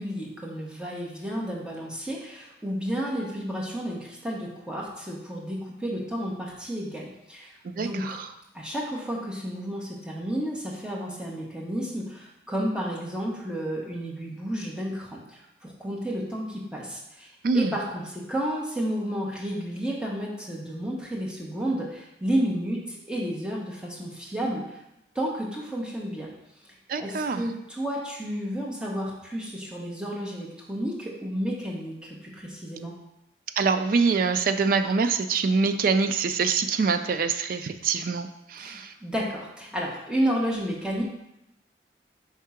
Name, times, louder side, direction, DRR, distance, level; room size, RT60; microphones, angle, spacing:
voice 1, 0.0-8.2 8.5-17.3 17.5-24.8 25.1-26.3 27.0-32.9 38.6-41.0, equal, 5° right, -4 dB, 1.1 m, -31 dB
voice 2, 7.8-8.3 17.4-17.7 26.9-27.4 33.6-38.9, right 4 dB, 50° right, 9 dB, 0.3 m, -25 dB
4.7 x 3.6 x 5.6 m, 0.86 s
head